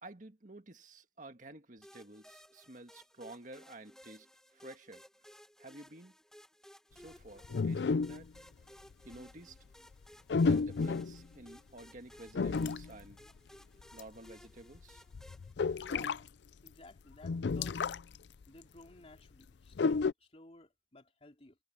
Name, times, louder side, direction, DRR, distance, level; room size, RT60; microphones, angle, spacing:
voice 1, 0.0-4.3 4.5-5.0 5.6-6.1 6.9-8.3 9.0-9.6 10.4-13.2 13.9-15.0, right 2 dB, 45° right, 1.8 m, -51 dB
sound 1, 1.8-15.5, equal, 5° left, 1.5 m, -58 dB
sound 2, 7.4-8.4 8.9-9.1 10.3-11.2 12.3-13.0 13.8-14.0 14.3-14.4 14.7-16.2 16.7-16.8 17.1-18.2 18.4-18.5 19.7-20.1, left 4 dB, 75° left, 0.4 m, -31 dB
voice 2, 15.8-16.2 16.6-17.8 18.5-21.6, left 2 dB, 35° left, 3.0 m, -56 dB
head